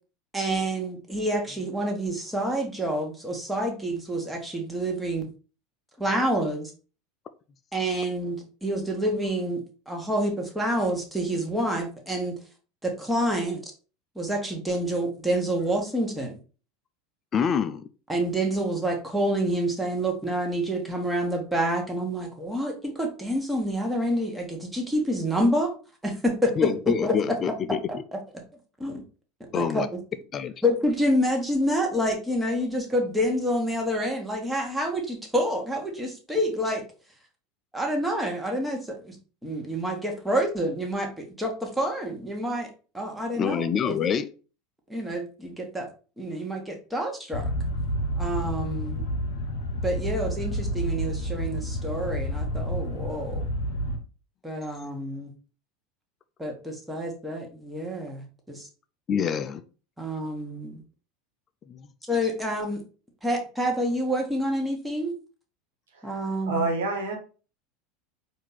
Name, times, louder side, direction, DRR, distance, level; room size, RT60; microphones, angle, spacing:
voice 1, 0.3-5.3 6.0-6.7 7.7-12.4 12.8-13.7 14.1-16.4 18.1-25.7 26.0-27.4 28.3-28.4 28.8-29.0 29.5-29.8 30.6-36.8 37.7-39.2 39.4-42.7 42.9-44.0 44.9-45.9 46.2-47.5 48.2-49.0 49.8-53.5 54.4-55.3 56.4-58.7 60.0-60.8 62.1-62.8 63.2-65.1 66.0-66.6, equal, 5° right, 1.4 m, -28 dB
voice 2, 17.3-17.8 26.6-28.0 29.5-29.9 30.3-30.5 43.4-44.3 59.1-59.6 61.7-61.9, left 7 dB, 35° left, 0.5 m, -26 dB
sound 1, 47.3-54.0, equal, 65° left, 0.8 m, -29 dB
voice 3, 66.5-67.1, right 3 dB, 75° right, 1.4 m, -28 dB
4.4 x 2.8 x 3.9 m
figure-of-eight pair, 80°, 0 cm